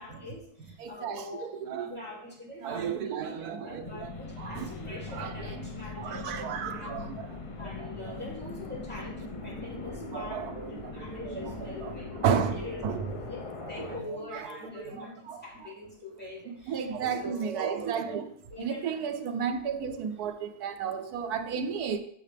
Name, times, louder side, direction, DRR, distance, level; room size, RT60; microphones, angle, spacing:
voice 1, 0.0-1.5 1.8-6.9 7.6-12.2 12.5-12.8 13.2-13.4 13.7-17.6 18.1-19.1, left 2 dB, 5° left, 2.8 m, -44 dB
voice 2, 0.8-1.2 1.7-1.9 2.6-3.9 4.4-4.7 5.1-5.5 6.0-7.1 10.1-10.7 11.2-11.9 12.2-12.6 12.8-13.0 14.3-14.4 14.8-15.4 16.5-18.2 18.6-22.0, right 7 dB, 85° right, 1.3 m, -32 dB
sound 1, 3.8-14.0, left 3 dB, 40° left, 0.4 m, -40 dB
9.4 x 6.6 x 3.5 m
omnidirectional pair, 1.6 m